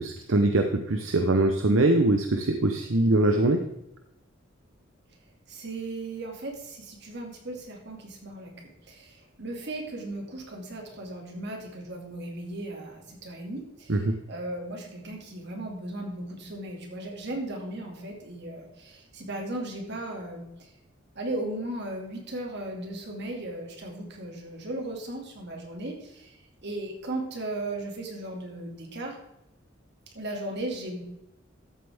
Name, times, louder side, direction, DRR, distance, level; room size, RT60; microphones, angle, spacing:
voice 1, 0.0-3.6 13.9-14.2, right 2 dB, 75° right, 5 dB, 0.8 m, -23 dB
voice 2, 5.5-8.6 8.9-20.7 21.1-26.4 26.6-29.2 30.1-31.0, right 1 dB, 60° right, 1 dB, 2.3 m, -36 dB
13.5 x 7.9 x 3.5 m, 0.87 s
head